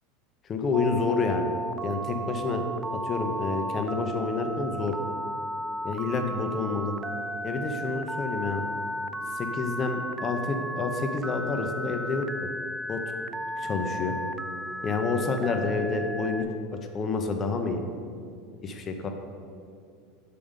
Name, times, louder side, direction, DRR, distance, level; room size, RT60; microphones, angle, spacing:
voice 1, 0.5-1.5 1.8-2.6 2.9-5.0 5.8-6.9 7.4-8.6 9.3-12.3 12.9-13.2 13.6-14.2 14.8-16.5 16.7-17.8 18.6-19.1, left 4 dB, 30° left, 5 dB, 0.6 m, -29 dB
Telephone, 0.7-16.4, right 1 dB, 10° right, 0.3 m, -34 dB
6.7 x 5.4 x 5.1 m, 2.3 s
supercardioid pair, 135°, 0 cm